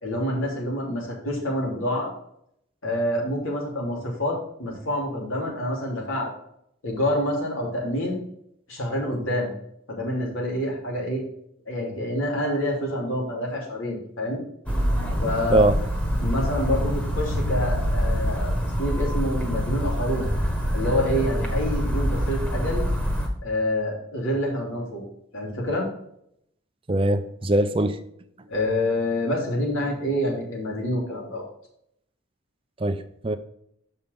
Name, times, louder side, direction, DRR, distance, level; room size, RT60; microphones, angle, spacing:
voice 1, 0.0-2.1 2.8-6.3 6.8-8.2 8.7-9.5 9.9-11.2 11.7-14.4 15.2-15.6 16.2-18.5 18.8-20.3 20.7-22.8 23.4-25.0 25.3-25.9 28.5-31.4, left 1 dB, 90° left, 3.0 m, -27 dB
sound 1, 14.7-23.3, equal, 5° left, 1.3 m, -25 dB
voice 2, 26.9-28.0 32.8-33.4, right 1 dB, 25° right, 0.5 m, -22 dB
7.1 x 5.5 x 5.2 m
head